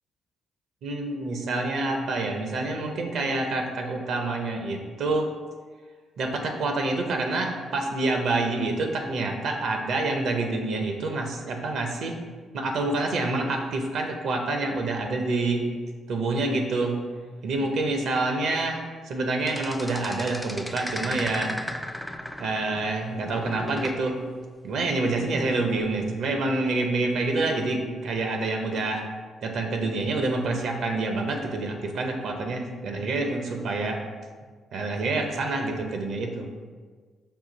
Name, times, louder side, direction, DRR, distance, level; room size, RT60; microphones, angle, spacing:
voice 1, 0.8-5.3 6.2-12.1 12.5-15.7 16.1-17.0 17.4-21.5 22.4-24.2 24.6-29.0 29.4-34.0 34.7-36.5, right 2 dB, 75° right, 3 dB, 0.7 m, -27 dB
sound 1, 19.5-23.0 23.2-24.0 25.8-26.0, left 1 dB, 5° left, 0.3 m, -36 dB
5.6 x 2.4 x 3.9 m, 1.5 s
cardioid pair, 70°, 0 cm